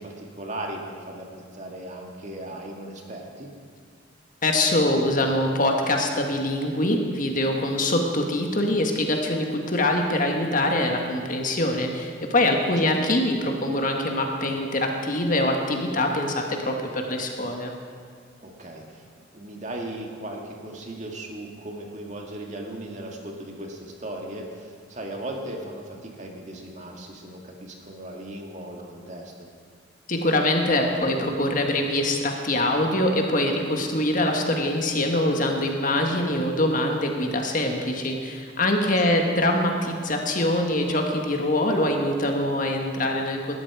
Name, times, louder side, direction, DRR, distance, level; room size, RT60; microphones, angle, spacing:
voice 1, 0.0-3.5 12.6-13.0 18.4-29.5 39.1-39.2, right 1 dB, 40° right, 1 dB, 2.0 m, -37 dB
voice 2, 4.4-17.7 30.1-43.5, left 1 dB, 45° left, 2 dB, 1.6 m, -24 dB
19.0 x 13.0 x 4.9 m, 2.1 s
head